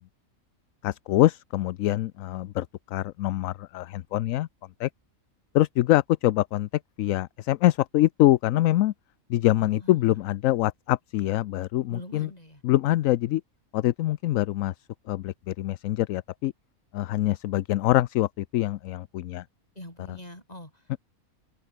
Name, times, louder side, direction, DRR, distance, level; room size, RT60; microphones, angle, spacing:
voice 1, 0.8-2.7 2.9-4.5 4.8-4.9 5.5-6.7 7.0-8.9 9.3-12.3 12.6-13.4 13.7-14.7 15.1-16.5 16.9-19.4, left 15 dB, 75° left, 0.9 m, -24 dB
voice 2, 9.6-10.2 11.9-12.6 19.7-21.0, left 1 dB, 30° left, 8.2 m, -44 dB
omnidirectional pair, 1.4 m